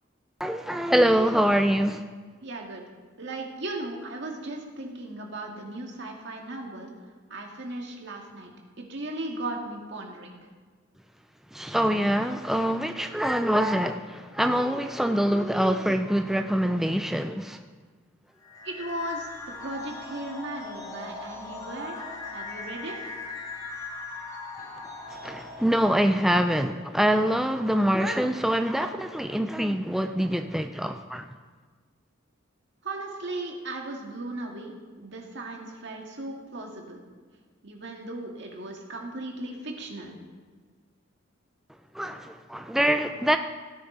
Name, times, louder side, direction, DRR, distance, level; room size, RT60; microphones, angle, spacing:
voice 1, 0.4-2.1 11.5-17.6 25.1-31.3 41.9-43.4, equal, ahead, 7 dB, 0.3 m, -25 dB
voice 2, 2.4-2.8 3.2-6.9 7.3-8.5 8.8-10.4 18.6-19.3 19.6-22.0 22.3-23.1 32.8-37.0 37.6-40.1, right 2 dB, 60° right, 0 dB, 2.0 m, -36 dB
sound 1, 18.4-26.0, left 3 dB, 20° left, 1.7 m, -39 dB
17.0 x 9.4 x 3.9 m, 1.5 s
head